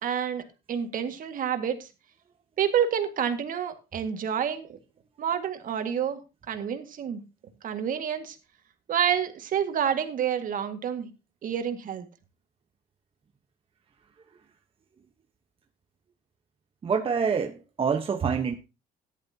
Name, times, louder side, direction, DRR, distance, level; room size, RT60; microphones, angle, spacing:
voice 1, 0.0-1.9 2.6-4.8 5.2-6.2 6.5-7.2 7.6-8.4 8.9-11.1 11.4-12.1, right 8 dB, 55° right, 1.9 m, -28 dB
voice 2, 16.8-18.6, right 6 dB, 35° right, 1.1 m, -26 dB
14.0 x 11.0 x 2.8 m
cardioid pair, 110°, 17 cm